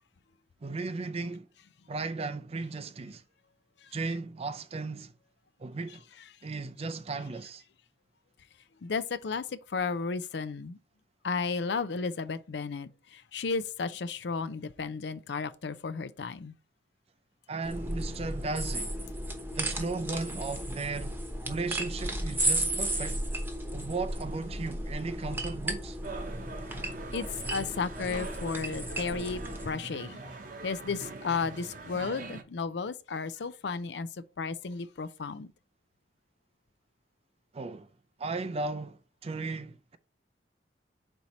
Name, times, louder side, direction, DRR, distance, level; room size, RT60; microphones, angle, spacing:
voice 1, 0.6-1.5 1.9-3.2 3.9-5.2 5.6-6.0 6.4-7.6 17.5-18.9 19.6-21.1 21.4-23.3 23.7-26.0 37.5-37.9 38.2-40.0, right 3 dB, 35° right, 0.4 m, -36 dB
voice 2, 8.8-10.8 11.2-16.6 27.1-30.2 30.6-34.1 34.4-35.5, left 4 dB, 70° left, 0.5 m, -33 dB
sound 1, 17.6-29.7, right 1 dB, 10° right, 1.0 m, -34 dB
sound 2, 26.0-32.4, right 3 dB, 50° right, 0.8 m, -43 dB
4.5 x 4.2 x 5.2 m
head